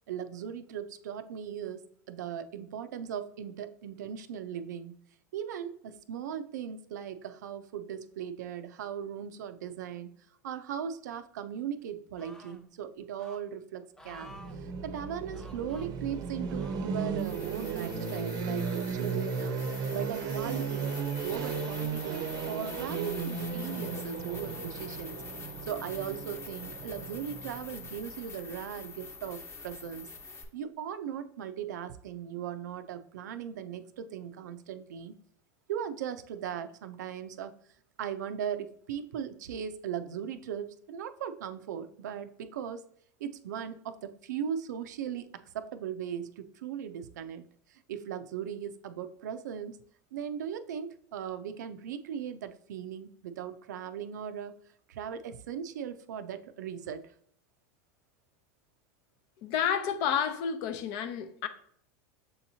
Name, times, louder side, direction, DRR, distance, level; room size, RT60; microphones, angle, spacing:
voice 1, 0.1-4.9 5.3-10.1 10.4-19.6 19.9-21.0 21.2-25.2 25.6-30.1 30.5-35.2 35.7-37.5 38.0-42.9 43.2-47.4 47.7-49.8 50.1-54.6 54.9-57.1, right 8 dB, 90° right, 0.4 m, -38 dB
sound 1, 12.2-12.6 13.2-13.4 14.0-14.6 15.3-15.9 16.5-17.2 17.9-18.0, left 1 dB, 5° left, 0.5 m, -52 dB
sound 2, 14.1-28.0, right 5 dB, 45° right, 0.6 m, -35 dB
sound 3, 17.2-30.4, left 4 dB, 30° left, 0.9 m, -45 dB
voice 2, 59.4-61.5, left 8 dB, 55° left, 0.6 m, -30 dB
6.8 x 2.8 x 2.7 m
supercardioid pair, 115°, 9 cm